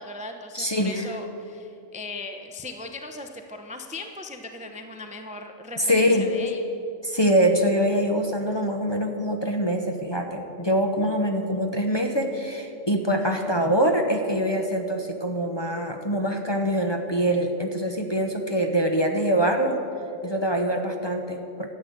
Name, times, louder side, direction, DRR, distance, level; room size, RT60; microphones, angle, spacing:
voice 1, 0.0-6.6, left 2 dB, 10° right, 5 dB, 0.6 m, -38 dB
voice 2, 0.5-1.1 5.8-6.3 7.0-19.8 20.2-21.7, equal, 25° left, 3 dB, 0.8 m, -24 dB
13.0 x 8.8 x 7.9 m, 2.8 s
omnidirectional pair, 1.3 m